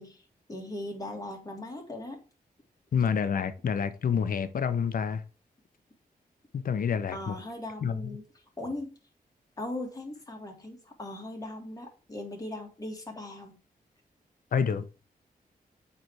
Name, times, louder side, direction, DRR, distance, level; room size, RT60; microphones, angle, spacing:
voice 1, 0.0-2.2 7.1-8.9 9.6-13.6, left 1 dB, 25° left, 2.0 m, -39 dB
voice 2, 2.9-5.2 6.5-7.3 7.8-8.0 14.5-14.9, left 7 dB, 65° left, 0.7 m, -28 dB
8.1 x 3.3 x 4.7 m
wide cardioid pair, 115°, 16 cm